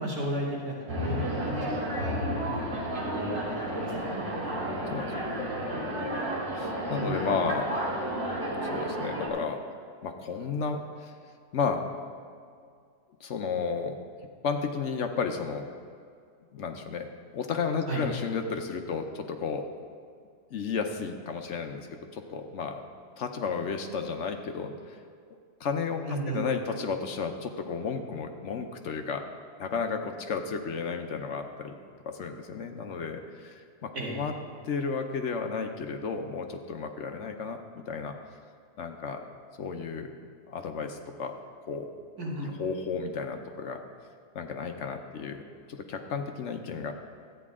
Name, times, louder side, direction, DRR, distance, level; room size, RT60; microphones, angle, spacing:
voice 1, 0.0-2.6 3.0-4.3 7.0-7.1 17.9-18.0 26.0-26.4 33.9-34.1 42.2-42.5, right 1 dB, 70° right, -5 dB, 2.6 m, -35 dB
sound 1, 0.9-9.3, right 1 dB, 55° right, 2.4 m, -32 dB
voice 2, 4.5-6.2 6.5-7.7 8.6-9.6 10.0-11.2 11.5-11.9 13.2-14.0 14.4-15.7 16.5-19.7 20.5-22.8 23.2-25.0 25.6-26.0 26.3-29.3 29.6-34.3 34.6-38.2 38.8-39.2 39.6-40.2 40.5-41.3 41.7-41.9 42.4-43.8 44.3-45.4 45.7-46.9, left 5 dB, 60° left, 5 dB, 0.9 m, -33 dB
13.5 x 9.2 x 3.6 m, 2.2 s
omnidirectional pair, 1.7 m